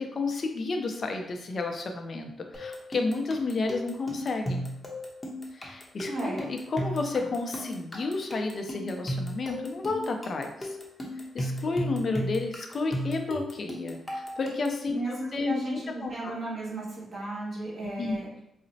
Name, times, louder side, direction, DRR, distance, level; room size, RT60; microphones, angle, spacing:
voice 1, 0.0-4.7 5.5-10.8 11.3-16.3 18.0-18.4, left 3 dB, 50° left, 4 dB, 0.5 m, -31 dB
sound 1, 2.5-14.8, equal, 20° left, 0.7 m, -36 dB
voice 2, 6.1-6.4 14.9-18.3, right 2 dB, 45° right, -6 dB, 1.4 m, -34 dB
3.9 x 2.0 x 2.7 m, 0.80 s
cardioid pair, 85°, 0 cm